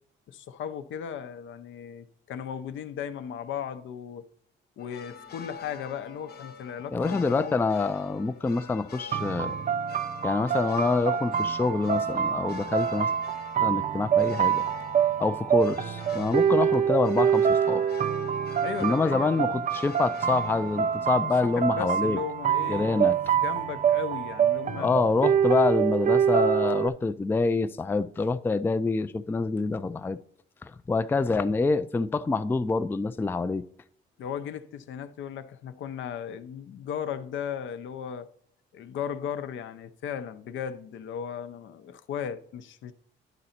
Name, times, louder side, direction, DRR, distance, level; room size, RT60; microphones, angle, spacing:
voice 1, 0.3-4.3 4.8-7.6 18.6-19.6 21.4-23.1 23.3-24.9 34.2-38.3 38.7-42.9, left 8 dB, 75° left, 0.6 m, -36 dB
sound 1, 4.8-21.3, left 6 dB, 55° left, 0.9 m, -45 dB
voice 2, 6.9-9.6 10.2-13.1 13.6-14.6 15.2-22.2 22.7-23.1 24.8-30.2 30.9-33.6, left 3 dB, 10° left, 0.3 m, -26 dB
sound 2, 9.1-26.9, right 8 dB, 40° right, 0.5 m, -26 dB
11.0 x 3.9 x 4.2 m
cardioid pair, 90°, 20 cm